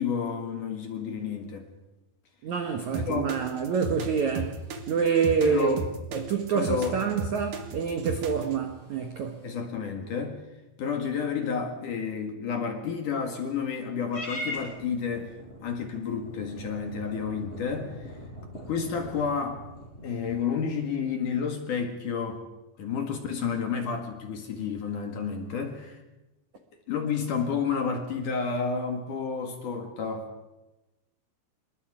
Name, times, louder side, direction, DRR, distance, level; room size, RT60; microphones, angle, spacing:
voice 1, 0.0-1.7 3.0-3.3 5.4-5.8 6.5-7.0 9.4-10.4 10.8-15.3 15.6-18.2 18.7-19.6 20.0-22.4 22.8-26.0 26.9-30.3, left 6 dB, 55° left, 2.8 m, -30 dB
voice 2, 2.4-5.8 6.1-9.5, right 6 dB, 85° right, 1.6 m, -27 dB
sound 1, 2.9-8.6, right 3 dB, 55° right, 2.8 m, -34 dB
Purr / Meow, 14.1-20.6, left 1 dB, 10° left, 6.5 m, -41 dB
27.0 x 23.0 x 5.1 m
omnidirectional pair, 5.6 m